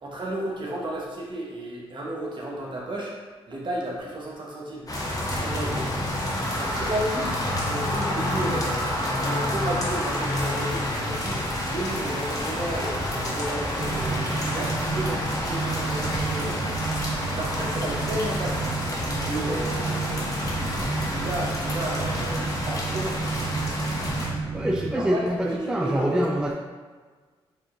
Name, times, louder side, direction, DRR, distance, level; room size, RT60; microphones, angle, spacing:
voice 1, 0.0-3.2 3.5-4.9 5.4-5.9 6.6-16.8 17.3-18.8 19.2-23.2 24.8-26.4, right 1 dB, 50° right, -3 dB, 1.1 m, -33 dB
sound 1, 4.9-24.3, left 1 dB, 35° left, 0.9 m, -29 dB
sound 2, 13.8-25.0, right 4 dB, 85° right, 0.6 m, -31 dB
voice 2, 24.5-25.4 25.7-26.5, equal, 5° right, 0 dB, 0.4 m, -25 dB
4.7 x 2.8 x 2.5 m, 1.4 s
cardioid pair, 60°, 11 cm